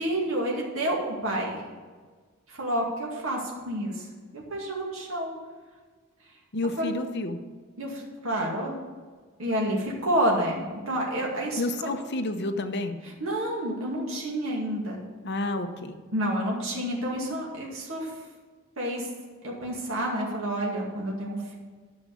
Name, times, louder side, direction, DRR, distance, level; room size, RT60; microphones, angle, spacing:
voice 1, 0.0-1.6 2.5-4.1 4.3-5.3 6.8-6.9 7.8-8.7 9.4-11.9 13.0-15.0 16.1-18.1 18.8-19.1 19.4-21.5, right 1 dB, 75° right, -2 dB, 2.2 m, -29 dB
voice 2, 6.5-7.4 11.6-13.0 15.2-16.0, left 2 dB, 55° left, 6 dB, 0.9 m, -30 dB
11.0 x 6.3 x 6.9 m, 1.5 s
head